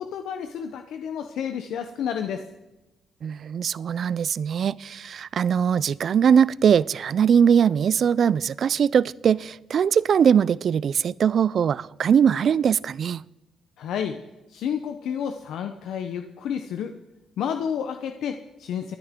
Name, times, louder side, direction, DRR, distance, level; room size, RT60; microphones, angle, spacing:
voice 1, 0.0-2.4 13.8-14.2 14.5-17.0 17.4-19.0, left 8 dB, 80° left, 0.8 m, -30 dB
voice 2, 3.2-13.2, right 7 dB, 55° right, 0.3 m, -21 dB
23.5 x 10.0 x 3.7 m
cardioid pair, 90°, 0 cm